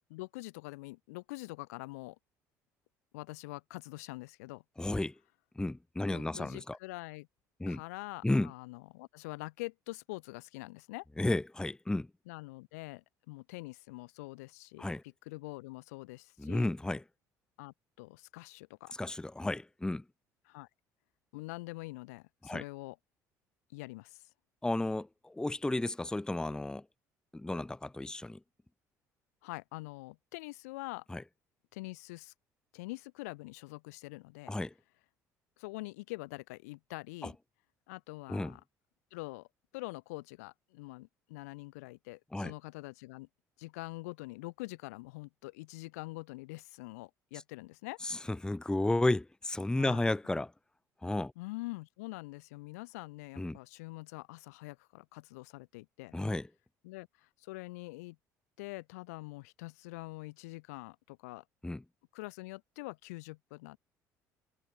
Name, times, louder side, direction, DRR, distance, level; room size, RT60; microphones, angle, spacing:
voice 1, 0.1-2.2 3.1-4.6 6.1-7.3 7.7-11.1 12.3-14.8 15.3-16.7 17.6-18.9 20.5-20.7 21.3-23.0 23.7-24.2 29.4-31.0 31.7-32.3 32.7-34.5 35.6-37.4 37.9-38.6 39.1-39.5 39.7-43.3 43.6-48.0 49.7-50.1 51.4-56.1 56.8-58.2 58.6-61.4 62.1-63.8, left 23 dB, 80° left, 3.9 m, -45 dB
voice 2, 4.8-5.2 5.6-6.8 7.6-7.8 8.2-8.5 11.2-12.1 14.8-15.0 16.4-17.0 18.9-20.0 22.4-22.6 24.6-26.8 27.3-28.4 31.1-31.2 34.5-34.7 37.2-37.3 38.3-38.6 42.3-42.5 48.0-50.5 51.0-51.3 53.4-53.6 56.1-56.5 61.6-61.8, left 2 dB, 10° left, 0.8 m, -33 dB
hypercardioid pair, 65°, 8 cm